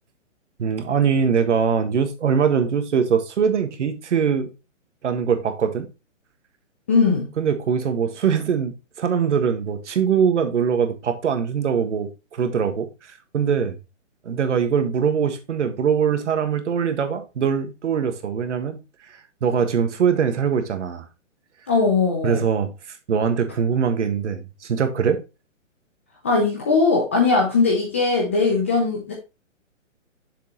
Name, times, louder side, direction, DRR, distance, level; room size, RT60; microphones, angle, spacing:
voice 1, 0.6-4.5 5.0-5.9 7.4-12.9 13.3-13.8 14.2-18.8 19.4-21.0 22.2-25.2, right 7 dB, 65° right, 1.6 m, -22 dB
voice 2, 6.9-7.3 21.7-22.4 26.2-29.1, left 4 dB, 10° left, 0.4 m, -19 dB
6.8 x 6.5 x 2.9 m
hypercardioid pair, 150°, 38 cm